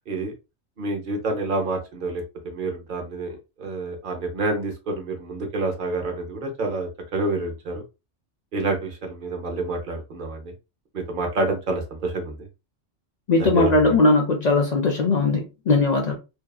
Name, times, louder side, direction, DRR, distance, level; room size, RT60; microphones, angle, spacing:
voice 1, 0.8-7.8 8.5-10.5 10.9-12.4 13.4-13.8, right 2 dB, 50° right, 0.8 m, -28 dB
voice 2, 13.3-16.1, left 3 dB, 65° left, 0.4 m, -19 dB
2.7 x 2.3 x 2.2 m
omnidirectional pair, 1.3 m